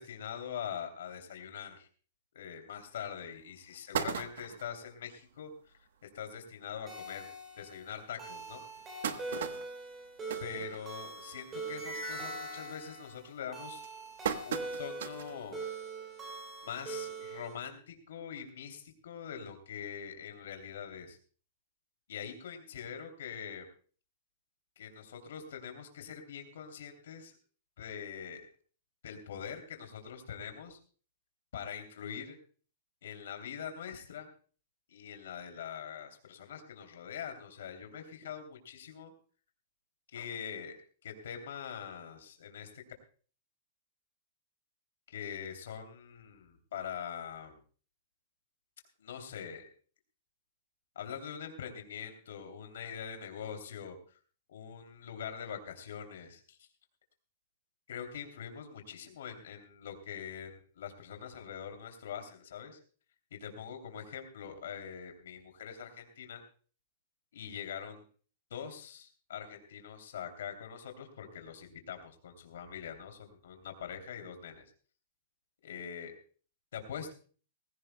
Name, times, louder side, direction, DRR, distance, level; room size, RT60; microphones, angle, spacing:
voice 1, 0.0-1.9 2.3-5.5 6.0-7.3 7.6-8.6 10.4-13.8 14.4-15.6 16.6-21.2 22.1-23.7 24.8-27.3 27.8-28.4 29.0-30.8 31.5-32.4 33.0-34.3 34.9-39.1 40.1-40.7 41.0-42.7 45.1-47.6 49.0-49.6 50.9-54.0 54.5-56.7 57.9-62.8 63.4-66.4 67.3-68.0 68.5-74.6 75.6-76.1 76.7-77.1, left 8 dB, 75° left, 5 dB, 2.9 m, -43 dB
sound 1, 2.8-2.9 3.4-3.5 3.7-4.8 5.3-5.4 5.7-5.8 6.1-6.3 7.0-7.1 7.6-7.7 8.5-11.3 11.7-12.0 12.4-12.8 13.4-15.4 15.8-15.9 17.1-17.2, right 8 dB, 75° right, 1.0 m, -38 dB
sound 2, 6.9-17.5, right 3 dB, 15° right, 3.2 m, -42 dB
19.5 x 16.0 x 2.2 m, 0.41 s
supercardioid pair, 170°, 0 cm